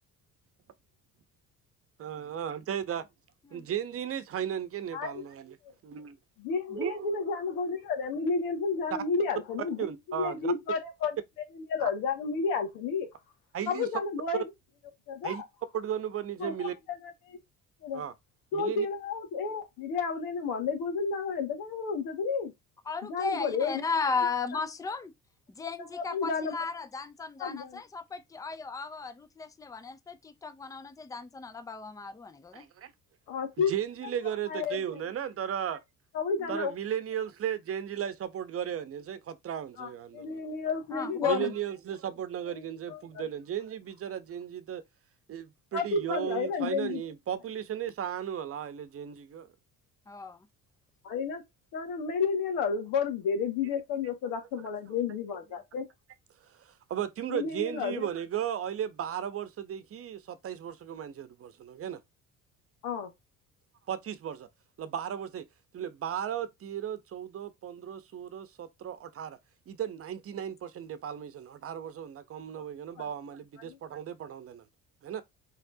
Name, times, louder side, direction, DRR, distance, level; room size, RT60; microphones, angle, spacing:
voice 1, 2.0-3.1 3.5-5.6 5.8-6.1 6.7-7.1 9.8-10.5 11.8-11.9 13.5-13.9 15.2-15.4 15.7-16.7 17.9-18.1 18.5-18.9 32.5-32.9 33.6-35.8 36.5-40.3 41.2-44.8 45.3-49.5 56.5-62.0 63.9-64.5 64.8-65.4 65.7-69.4 69.7-74.6 75.0-75.2, right 9 dB, 45° right, 0.9 m, -35 dB
voice 2, 6.4-11.2 11.5-13.1 13.7-14.5 15.1-15.4 16.4-16.7 17.0-17.4 17.8-18.0 18.5-22.5 23.1-23.8 25.9-26.6 27.4-27.8 33.3-33.7 34.5-34.8 36.1-36.7 39.8-41.5 42.5-42.6 42.9-43.3 45.7-47.0 51.0-51.4 51.7-55.8 57.3-58.1 62.8-63.1 73.6-73.8, left 5 dB, 85° left, 1.8 m, -31 dB
voice 3, 22.9-25.1 25.5-32.6 36.4-36.5 40.9-41.5 50.1-50.5, left 4 dB, 10° left, 0.5 m, -35 dB
4.4 x 3.7 x 2.7 m
cardioid pair, 100°, 33 cm